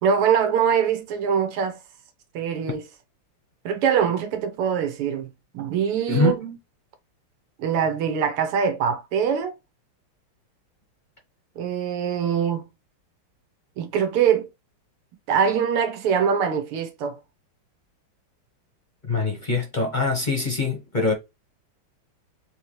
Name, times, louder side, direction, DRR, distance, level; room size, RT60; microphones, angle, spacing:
voice 1, 0.0-1.8 2.3-2.8 3.6-6.4 7.6-9.6 11.6-12.6 13.8-14.5 15.3-17.2, right 7 dB, 85° right, 1.8 m, -23 dB
voice 2, 6.1-6.6 19.1-21.1, left 3 dB, 30° left, 0.9 m, -24 dB
4.6 x 3.0 x 3.1 m
omnidirectional pair, 2.4 m